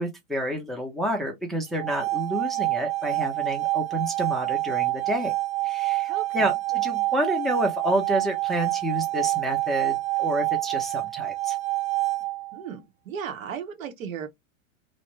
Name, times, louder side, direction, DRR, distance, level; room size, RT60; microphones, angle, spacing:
voice 1, 0.0-5.3 5.6-11.6, right 1 dB, ahead, 0.4 m, -29 dB
sound 1, 1.7-12.6, right 19 dB, 35° right, 0.7 m, -27 dB
voice 2, 6.1-6.5 12.5-14.3, right 7 dB, 85° right, 0.9 m, -36 dB
2.5 x 2.1 x 3.0 m
hypercardioid pair, 115°, 39 cm